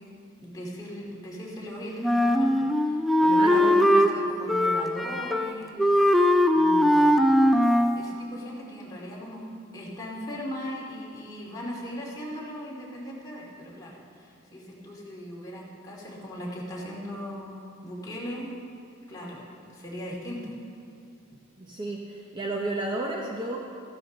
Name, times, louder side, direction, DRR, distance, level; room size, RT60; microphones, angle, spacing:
voice 1, 0.4-5.8 6.5-7.6 7.9-9.4 9.7-18.6 19.1-19.4 19.7-20.5, equal, 20° left, -5 dB, 2.6 m, -38 dB
Wind instrument woodwind instrument, 2.0-4.1 4.5-5.5 5.8-8.0, equal, ahead, 0.4 m, -20 dB
voice 2, 3.4-4.0 21.6-23.6, right 2 dB, 25° right, -1 dB, 0.9 m, -32 dB
15.0 x 12.0 x 4.0 m, 2.4 s
head